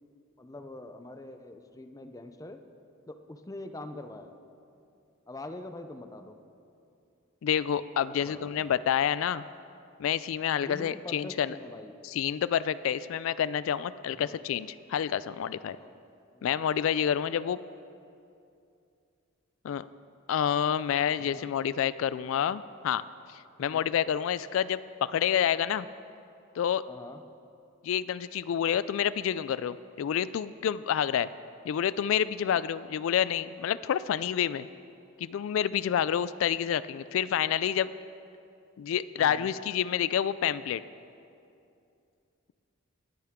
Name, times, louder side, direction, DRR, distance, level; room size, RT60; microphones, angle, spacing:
voice 1, 0.4-2.6 3.1-4.4 5.3-6.4 8.0-8.8 10.6-11.9 14.2-14.4 15.6-16.0 16.3-16.8 21.2-21.5 23.6-23.8 26.9-27.2 39.2-39.5, left 2 dB, 15° left, 8 dB, 0.5 m, -44 dB
voice 2, 7.4-9.4 10.0-11.5 12.0-15.8 16.4-17.6 19.6-19.9 20.3-23.0 23.6-25.9 26.6-26.8 27.8-31.3 31.6-34.7 35.2-37.9 38.8-40.8, left 9 dB, 70° left, 17 dB, 0.3 m, -28 dB
19.5 x 10.5 x 3.6 m, 2.6 s
head